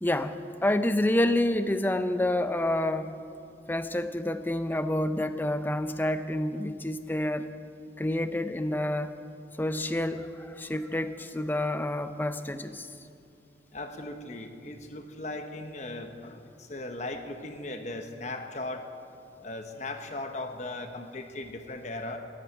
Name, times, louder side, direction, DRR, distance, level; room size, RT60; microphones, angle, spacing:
voice 1, 0.0-3.3 3.7-7.5 8.0-9.1 9.6-12.9, left 1 dB, 10° left, 10 dB, 0.5 m, -28 dB
voice 2, 13.7-18.8 19.3-22.2, left 2 dB, 40° left, 6 dB, 1.1 m, -38 dB
12.0 x 11.0 x 9.1 m, 2.6 s
head